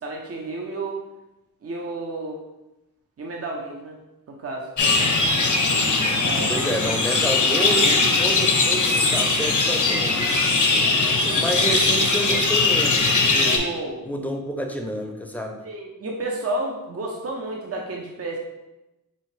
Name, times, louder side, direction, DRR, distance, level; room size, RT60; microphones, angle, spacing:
voice 1, 0.0-1.0 1.6-2.4 3.2-4.0 4.3-5.3 6.2-6.5 13.5-14.0 15.6-18.4, right 2 dB, 45° right, 0 dB, 0.7 m, -31 dB
sound 1, 4.8-13.6, left 3 dB, 60° left, 0.8 m, -20 dB
voice 2, 6.5-10.6 11.2-13.6 14.0-15.6, right 1 dB, 5° left, 2 dB, 0.6 m, -29 dB
5.5 x 2.9 x 3.2 m, 0.98 s
wide cardioid pair, 80°, 34 cm